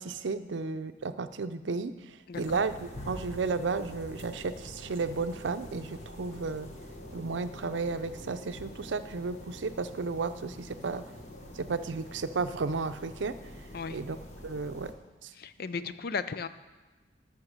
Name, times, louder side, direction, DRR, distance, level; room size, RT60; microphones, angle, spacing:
voice 1, 0.0-6.7 7.1-11.0 11.5-13.4 13.9-14.2 14.4-14.9 15.2-15.3, right 4 dB, 90° right, 11 dB, 0.6 m, -33 dB
voice 2, 2.3-2.6 13.7-14.0 15.4-16.5, left 5 dB, 55° left, 13 dB, 0.5 m, -35 dB
sound 1, 2.3-14.9, left 1 dB, 40° left, 1.4 m, -46 dB
13.5 x 5.9 x 6.6 m, 1.2 s
head